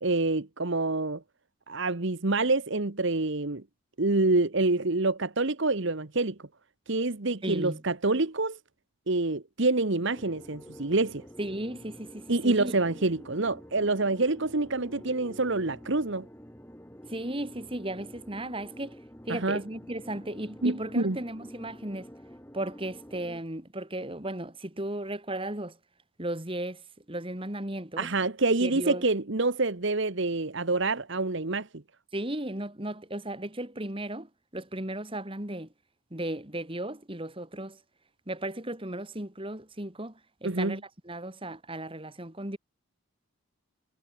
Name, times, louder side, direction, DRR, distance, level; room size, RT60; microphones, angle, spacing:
voice 1, 0.0-1.2 1.7-3.6 4.0-6.3 6.9-8.6 9.1-11.2 12.3-16.2 19.3-19.6 20.6-21.2 28.0-31.7 40.4-40.8, right 2 dB, 55° right, 1.3 m, -27 dB
voice 2, 7.4-7.8 11.4-12.8 17.1-19.0 19.3-22.1 22.5-25.8 26.2-28.1 28.6-29.1 32.1-35.7 36.1-37.8 38.3-42.6, right 1 dB, 25° right, 2.5 m, -35 dB
sound 1, 10.1-23.4, equal, 10° left, 5.4 m, -48 dB
head